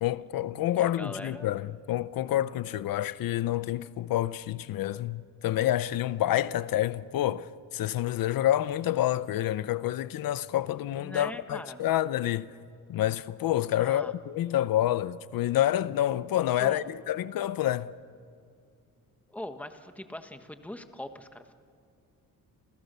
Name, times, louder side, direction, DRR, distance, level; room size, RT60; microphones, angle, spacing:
voice 1, 0.0-12.5 12.9-17.9, left 13 dB, 90° left, 0.8 m, -28 dB
voice 2, 0.7-1.5 10.9-11.8 13.8-14.1 16.6-16.9 19.3-21.5, left 1 dB, 5° left, 1.4 m, -41 dB
30.0 x 27.0 x 6.8 m
wide cardioid pair, 155°, 34 cm